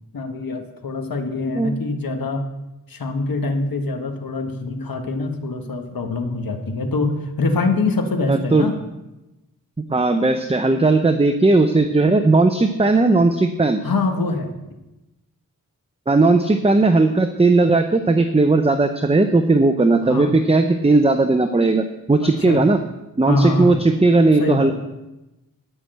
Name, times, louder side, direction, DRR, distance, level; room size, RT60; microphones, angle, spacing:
voice 1, 0.1-2.4 2.9-8.8 13.8-14.5 20.0-20.3 22.2-22.6 23.3-23.8 24.4-24.7, left 3 dB, 75° left, 4 dB, 1.5 m, -24 dB
voice 2, 8.3-8.7 9.9-13.8 16.1-22.8 23.2-24.8, right 3 dB, 15° right, 8 dB, 0.6 m, -17 dB
11.5 x 6.1 x 7.8 m, 0.99 s
wide cardioid pair, 65°, 35 cm